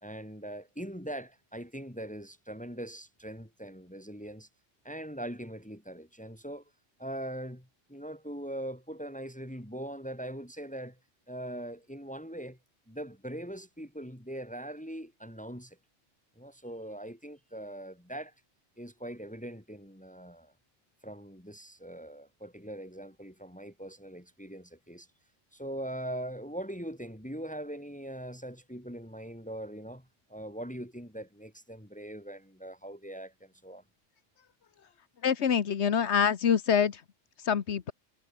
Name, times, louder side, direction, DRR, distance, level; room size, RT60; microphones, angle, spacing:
voice 1, 0.0-4.5 4.8-6.6 7.0-11.0 11.3-12.6 12.9-15.8 16.4-18.3 18.8-20.5 21.0-25.1 25.5-33.8, right 1 dB, 5° left, 2.9 m, -41 dB
voice 2, 35.2-36.9 37.5-37.9, left 7 dB, 65° left, 1.3 m, -25 dB
omnidirectional pair, 1.3 m